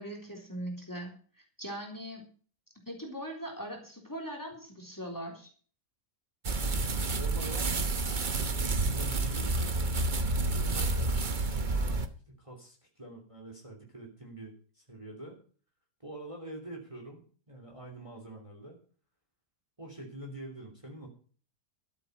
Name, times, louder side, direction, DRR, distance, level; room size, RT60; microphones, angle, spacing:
voice 1, 0.0-2.2 2.9-5.5, right 1 dB, 10° left, 1 dB, 3.5 m, -40 dB
sound 1, 6.4-12.1, right 3 dB, 35° right, 1.0 m, -29 dB
voice 2, 6.8-7.7 8.3-11.1 11.5-12.0 12.3-15.4 16.0-18.8 19.8-21.1, right 1 dB, 20° right, 1 dB, 3.0 m, -46 dB
13.0 x 8.2 x 6.6 m, 0.42 s
omnidirectional pair, 1.8 m